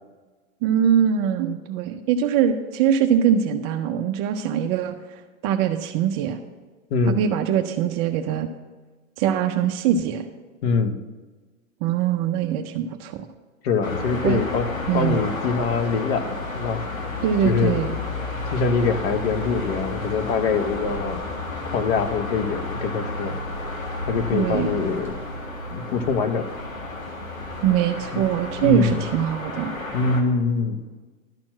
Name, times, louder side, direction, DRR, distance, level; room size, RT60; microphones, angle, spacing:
voice 1, 0.6-4.9 5.4-6.4 7.1-8.5 9.2-10.2 11.8-13.3 14.2-14.4 14.9-15.3 17.2-18.0 24.3-24.7 27.6-29.7, right 9 dB, 25° right, 6 dB, 0.4 m, -22 dB
voice 2, 6.9-7.2 10.6-11.0 13.6-14.7 14.9-16.8 17.4-17.8 18.5-21.2 21.7-23.4 24.1-25.2 25.7-26.5 28.1-28.3 28.6-29.0 29.9-30.8, left 5 dB, 50° left, 9 dB, 1.0 m, -24 dB
sound 1, 13.8-30.2, left 2 dB, 90° left, 1.9 m, -31 dB
12.0 x 4.4 x 7.3 m, 1.3 s
hypercardioid pair, 115°, 40 cm